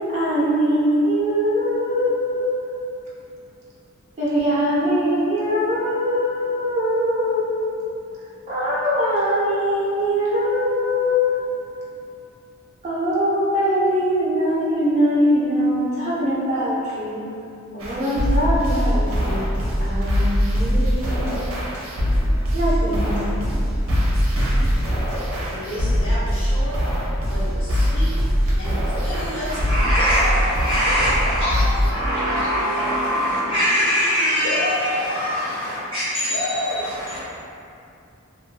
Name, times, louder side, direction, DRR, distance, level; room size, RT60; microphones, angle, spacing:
voice 1, 0.1-2.6 4.2-7.5 8.5-11.3 12.8-17.2 17.7-19.4 19.8-21.4 22.5-23.2, equal, 30° right, -8 dB, 0.6 m, -22 dB
sound 1, 17.8-31.9, equal, 80° right, 0.6 m, -22 dB
voice 2, 25.5-28.2 28.6-30.5 30.8-35.9 36.3-37.2, left 1 dB, 60° left, -8 dB, 0.8 m, -30 dB
voice 3, 29.5-30.2 30.6-31.4 31.9-34.7 35.2-36.4 36.6-37.2, equal, 25° left, -12 dB, 0.9 m, -22 dB
2.5 x 2.5 x 2.2 m, 2.6 s
head